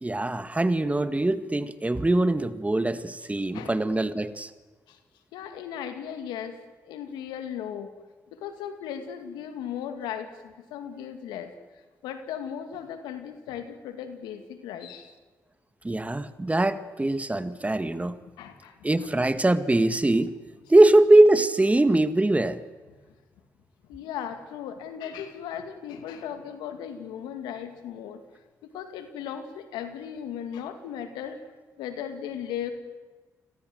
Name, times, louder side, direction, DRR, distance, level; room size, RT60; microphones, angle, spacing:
voice 1, 0.0-4.5 15.8-18.2 18.8-20.3 20.7-22.6, right 2 dB, 20° right, 12 dB, 1.8 m, -22 dB
voice 2, 5.3-6.6 6.8-7.9 8.3-11.5 12.0-15.1 18.4-19.1 23.9-28.2 28.6-31.4 31.8-32.7, left 9 dB, 90° left, 7 dB, 2.5 m, -37 dB
29.0 x 21.5 x 8.0 m, 1.3 s
supercardioid pair, 50°, 7 cm